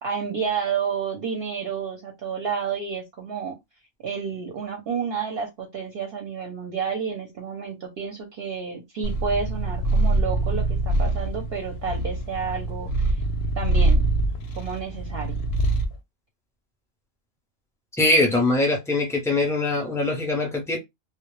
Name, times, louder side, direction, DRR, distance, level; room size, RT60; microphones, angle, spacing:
voice 1, 0.0-3.6 4.0-13.2 13.6-14.1 14.6-15.4, right 6 dB, 60° right, 0.7 m, -30 dB
Purr, 9.0-16.0, right 2 dB, 65° left, 0.7 m, -24 dB
voice 2, 18.0-20.8, left 2 dB, 5° left, 0.4 m, -22 dB
2.1 x 2.0 x 3.0 m
omnidirectional pair, 1.3 m